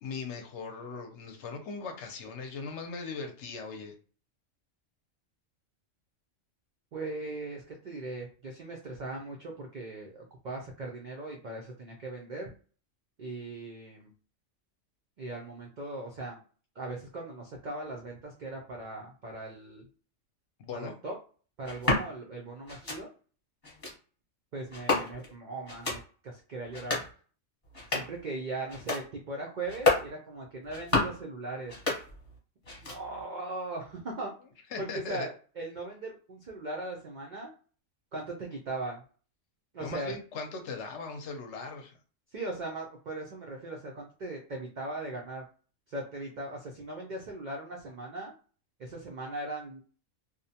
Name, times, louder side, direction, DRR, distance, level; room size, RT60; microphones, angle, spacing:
voice 1, 0.0-3.9 20.6-20.9 34.7-35.3 39.8-42.0, left 4 dB, 65° left, 5 dB, 0.8 m, -39 dB
voice 2, 6.9-12.5 13.2-14.1 15.2-16.4 16.8-19.9 20.7-21.1 21.6-23.1 24.5-27.0 27.9-31.7 32.9-34.3 34.8-37.5 38.1-39.0 39.7-40.1 42.3-45.4 45.9-48.3 48.8-49.8, right 2 dB, 75° right, 0 dB, 0.4 m, -39 dB
sound 1, 21.6-22.1 22.7-23.0 23.6-23.9 24.7-25.3 25.7-26.0 26.6-27.1 27.6-28.2 28.7-29.0 29.6-30.1 30.6-31.2 31.6-32.4 32.6-33.2, left 3 dB, 30° left, 0.9 m, -30 dB
2.6 x 2.1 x 2.7 m, 0.39 s
omnidirectional pair, 1.4 m